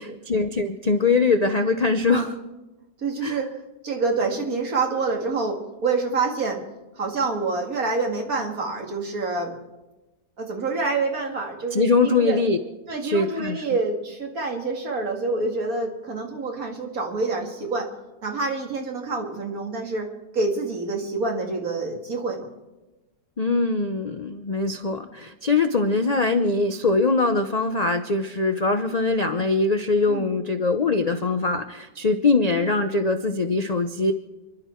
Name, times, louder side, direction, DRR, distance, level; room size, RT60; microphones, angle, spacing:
voice 1, 0.0-2.4 3.2-3.4 11.7-12.6 13.0-13.7 23.4-34.1, left 3 dB, 65° left, 7 dB, 0.4 m, -22 dB
voice 2, 3.0-3.5 3.8-6.6 6.9-9.5 10.4-12.4 12.9-17.9 18.2-20.1 20.3-22.5 30.1-30.3, right 3 dB, 55° right, 1 dB, 2.6 m, -27 dB
28.5 x 11.0 x 4.5 m, 1.1 s
omnidirectional pair, 1.9 m